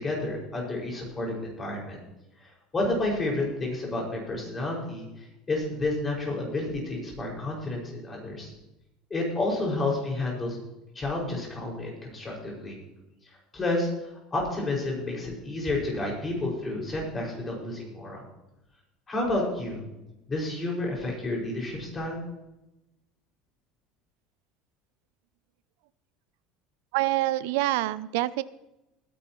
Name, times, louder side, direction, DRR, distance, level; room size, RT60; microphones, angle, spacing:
voice 1, 0.0-2.0 2.4-8.5 9.1-10.6 11.0-12.8 13.5-18.2 19.1-19.8 20.3-22.2, left 2 dB, 20° left, -2 dB, 5.6 m, -30 dB
voice 2, 26.9-28.4, right 17 dB, 80° right, 17 dB, 0.4 m, -26 dB
20.0 x 11.0 x 3.1 m, 0.94 s
supercardioid pair, 135°, 0 cm